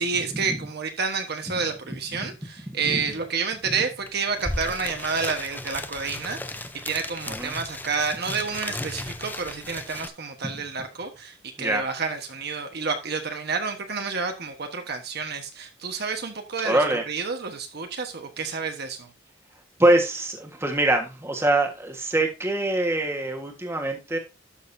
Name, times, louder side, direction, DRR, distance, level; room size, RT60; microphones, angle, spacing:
voice 1, 0.0-19.1, right 5 dB, 55° right, 1.2 m, -30 dB
sound 1, 4.1-4.2 4.3-10.1, left 2 dB, 10° left, 0.6 m, -35 dB
voice 2, 16.6-17.0 19.8-24.2, right 1 dB, 15° right, 1.4 m, -23 dB
12.0 x 6.5 x 2.7 m
head